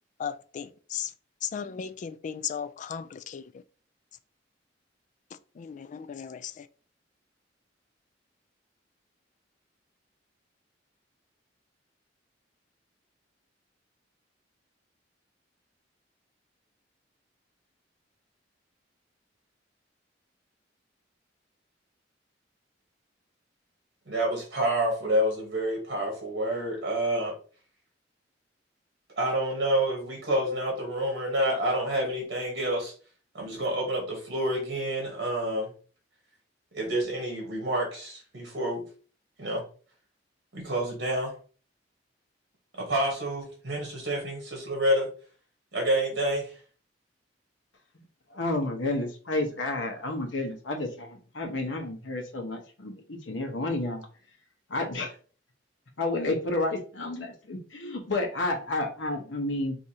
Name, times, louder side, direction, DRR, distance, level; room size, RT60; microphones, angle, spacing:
voice 1, 0.2-1.1 1.4-3.6 5.6-6.7, left 8 dB, 40° left, 0.3 m, -36 dB
voice 2, 24.1-27.3 29.2-32.9 33.3-35.7 36.7-38.8 39.4-39.6 40.5-41.3 42.7-45.1 45.7-46.6, right 1 dB, 60° right, 1.2 m, -28 dB
voice 3, 48.3-54.0 54.7-55.1 56.0-59.8, left 2 dB, 85° left, 0.9 m, -31 dB
4.7 x 2.7 x 2.7 m
head